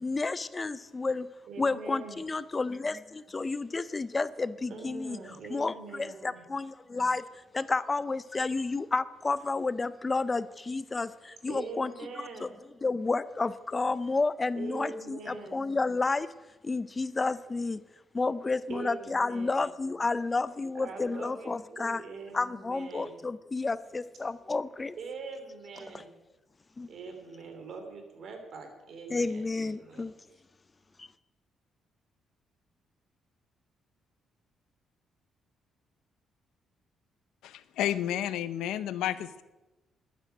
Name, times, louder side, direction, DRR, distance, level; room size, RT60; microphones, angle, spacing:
voice 1, 0.0-1.3 1.6-5.2 5.5-7.2 7.5-12.5 12.8-16.3 16.6-17.8 18.1-22.0 22.3-25.0 25.9-26.0 26.8-26.9 29.1-30.1 31.0-31.1, left 3 dB, 25° left, 16 dB, 0.5 m, -31 dB
voice 2, 1.5-2.2 4.7-6.5 11.4-12.5 14.5-15.6 18.7-19.7 20.7-23.2 24.9-26.1 26.9-30.1, right 4 dB, 65° right, 5 dB, 3.3 m, -43 dB
voice 3, 37.4-39.4, left 11 dB, 90° left, 15 dB, 0.6 m, -31 dB
12.0 x 9.7 x 7.9 m, 1.1 s
cardioid pair, 90°, 0 cm